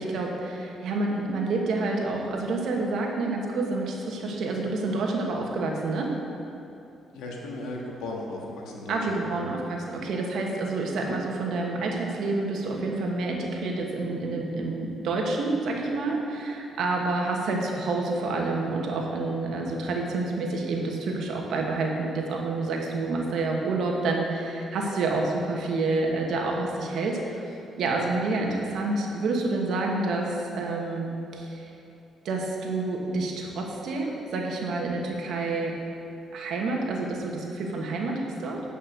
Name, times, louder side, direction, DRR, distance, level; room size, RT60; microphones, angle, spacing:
voice 1, 0.0-6.2 8.9-27.4 27.8-31.7 32.2-35.8 36.3-38.6, right 3 dB, 75° right, 0 dB, 1.4 m, -28 dB
voice 2, 7.1-9.5, left 2 dB, 90° left, -1 dB, 1.5 m, -36 dB
9.2 x 5.4 x 6.5 m, 2.8 s
cardioid pair, 90°, 0 cm